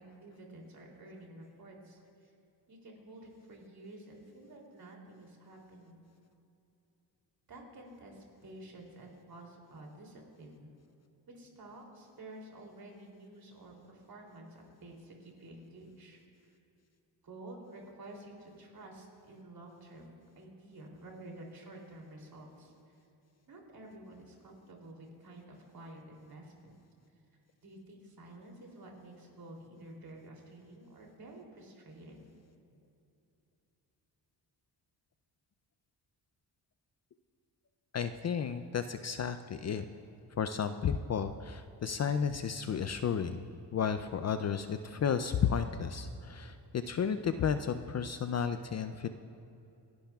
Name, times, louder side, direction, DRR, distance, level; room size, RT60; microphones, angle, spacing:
voice 1, 0.0-2.3 2.7-6.1 7.5-10.7 11.3-16.2 16.5-16.6 17.2-22.9 23.5-26.7 27.6-32.2, right 1 dB, 55° right, 0 dB, 3.1 m, -51 dB
voice 2, 37.9-39.8 40.4-49.1, left 7 dB, 40° left, 9 dB, 0.4 m, -33 dB
27.5 x 11.5 x 2.3 m, 2.8 s
cardioid pair, 115°, 43 cm